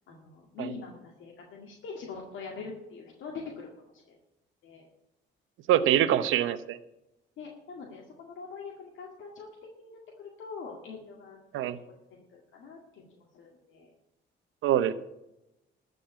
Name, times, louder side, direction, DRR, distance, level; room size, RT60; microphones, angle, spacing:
voice 1, 0.0-4.2 4.6-4.9 5.7-5.8 7.4-9.5 9.8-11.4 12.1-13.9, left 4 dB, 75° left, -1 dB, 2.1 m, -44 dB
voice 2, 5.7-6.8 11.5-11.8 14.6-14.9, right 11 dB, 85° right, 13 dB, 0.8 m, -24 dB
13.5 x 5.4 x 9.3 m, 0.89 s
cardioid pair, 90°, 20 cm